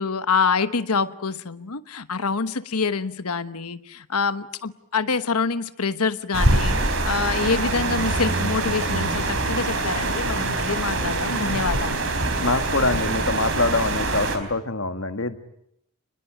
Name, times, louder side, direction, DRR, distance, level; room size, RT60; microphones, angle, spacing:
voice 1, 0.0-12.3, left 5 dB, 85° left, 12 dB, 1.1 m, -26 dB
sound 1, 6.3-14.4, right 2 dB, 60° right, 4.4 m, -24 dB
voice 2, 12.4-15.4, left 3 dB, 60° left, 9 dB, 1.9 m, -24 dB
29.5 x 21.0 x 9.2 m, 0.77 s
head